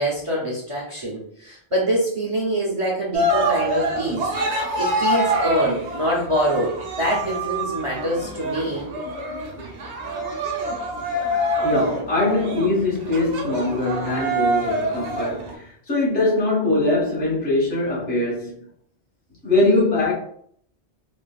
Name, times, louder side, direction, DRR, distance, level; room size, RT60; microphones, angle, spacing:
voice 1, 0.0-4.3 4.8-8.9, equal, 35° right, 0.6 m, -25 dB
Cheering, 3.1-15.5, right 1 dB, 85° right, 1.0 m, -26 dB
voice 2, 11.6-18.6 19.4-20.1, left 2 dB, 70° left, 1.5 m, -22 dB
3.3 x 2.4 x 2.3 m
omnidirectional pair, 1.1 m